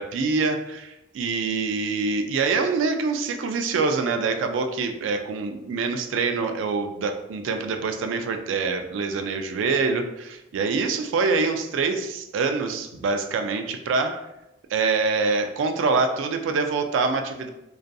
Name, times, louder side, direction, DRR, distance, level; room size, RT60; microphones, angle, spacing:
voice 1, 0.0-14.3 14.7-17.5, right 4 dB, 80° right, 7 dB, 0.3 m, -25 dB
2.3 x 2.2 x 2.5 m, 0.91 s
head